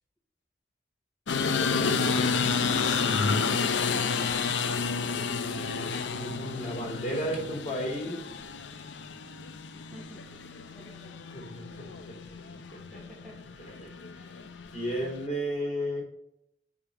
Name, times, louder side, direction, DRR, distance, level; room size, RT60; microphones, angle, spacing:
sound 1, 1.3-15.2, left 5 dB, 85° left, 0.6 m, -30 dB
voice 1, 6.1-8.2 11.3-11.6 13.8-13.9 14.1-14.3 14.7-16.0, equal, 35° left, -3 dB, 3.8 m, -34 dB
voice 2, 9.9-11.2 11.5-11.6 12.3-12.4 12.9-13.8, equal, 5° left, -5 dB, 2.4 m, -52 dB
8.7 x 5.1 x 5.0 m, 0.77 s
head